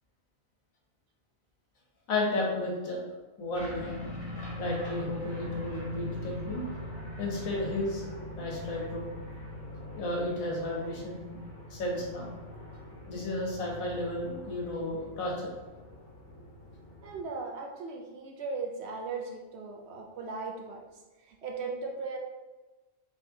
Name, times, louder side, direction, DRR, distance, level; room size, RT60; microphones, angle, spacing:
voice 1, 2.1-3.1 3.4-4.0 4.6-6.6 7.2-8.0 8.3-9.1 10.0-11.4 11.7-12.3 13.1-15.5, left 1 dB, 85° left, -2 dB, 1.4 m, -33 dB
sound 1, 3.5-17.2, left 1 dB, 45° left, 1.2 m, -41 dB
voice 2, 17.0-20.8 21.3-22.2, right 4 dB, 65° right, 1 dB, 0.7 m, -37 dB
4.6 x 3.2 x 2.8 m, 1.2 s
omnidirectional pair, 1.4 m